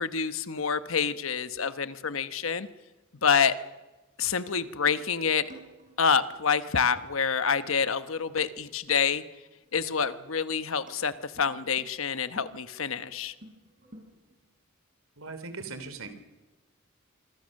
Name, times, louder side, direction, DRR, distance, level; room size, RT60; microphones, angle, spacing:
voice 1, 0.0-2.7 3.2-3.5 4.2-5.5 6.0-9.2 9.7-13.3, left 6 dB, 70° left, 12 dB, 1.1 m, -27 dB
sound 1, 4.2-9.3 9.6-9.7 10.1-10.5 10.9-12.5 13.0-14.5, right 1 dB, 40° right, 6.1 m, -53 dB
voice 2, 15.2-16.1, right 4 dB, 80° right, 9 dB, 3.1 m, -39 dB
26.5 x 25.0 x 6.5 m, 1.2 s
head